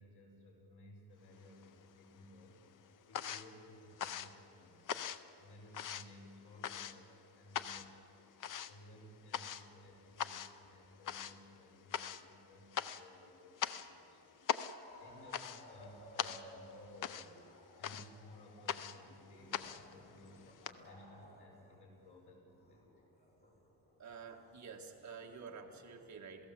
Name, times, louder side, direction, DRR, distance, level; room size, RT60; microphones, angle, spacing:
voice 1, 0.0-2.6 3.1-4.9 5.4-17.4 17.8-20.5 20.8-22.9, left 1 dB, 75° left, -1 dB, 6.0 m, -58 dB
sound 1, 1.3-2.1 2.4-20.7, left 9 dB, 50° left, 0.7 m, -42 dB
sound 2, 14.4-21.8 22.1-26.0, left 1 dB, 25° left, 3.6 m, -59 dB
voice 2, 24.0-26.5, right 5 dB, 45° right, 2 dB, 1.8 m, -50 dB
28.0 x 17.0 x 7.6 m, 2.8 s
wide cardioid pair, 180°, 39 cm